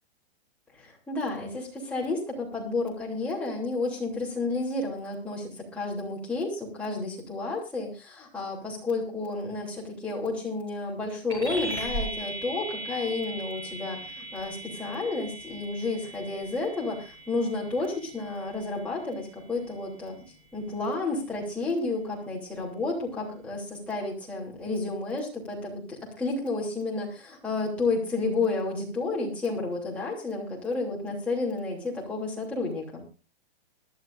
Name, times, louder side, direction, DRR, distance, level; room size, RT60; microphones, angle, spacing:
voice 1, 0.7-20.2 20.5-33.0, left 3 dB, 5° left, -5 dB, 2.9 m, -31 dB
sound 1, 11.3-21.1, right 1 dB, 15° right, 5.6 m, -39 dB
21.5 x 12.5 x 2.5 m, 0.34 s
hypercardioid pair, 170°, 31 cm